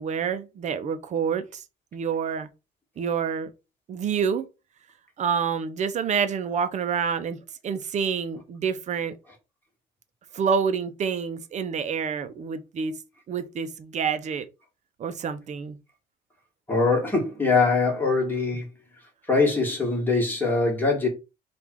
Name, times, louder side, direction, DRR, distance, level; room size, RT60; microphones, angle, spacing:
voice 1, 0.0-1.6 1.9-2.5 3.0-3.5 3.9-4.5 5.2-9.2 10.3-13.0 13.3-14.5 15.0-15.8, right 6 dB, 45° right, 0.6 m, -27 dB
voice 2, 16.7-18.7 19.3-21.1, left 3 dB, 10° left, 1.8 m, -22 dB
3.4 x 2.5 x 4.6 m
cardioid pair, 110°, 17 cm